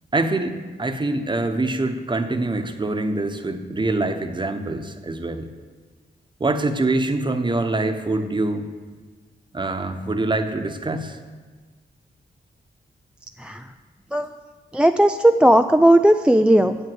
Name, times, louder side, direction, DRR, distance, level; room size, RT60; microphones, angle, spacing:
voice 1, 0.1-5.5 6.4-8.7 9.5-11.2, right 2 dB, 25° right, 8 dB, 1.0 m, -24 dB
voice 2, 14.7-16.8, right 1 dB, 5° right, 8 dB, 0.4 m, -16 dB
8.4 x 7.8 x 7.7 m, 1.4 s
cardioid pair, 80°, 18 cm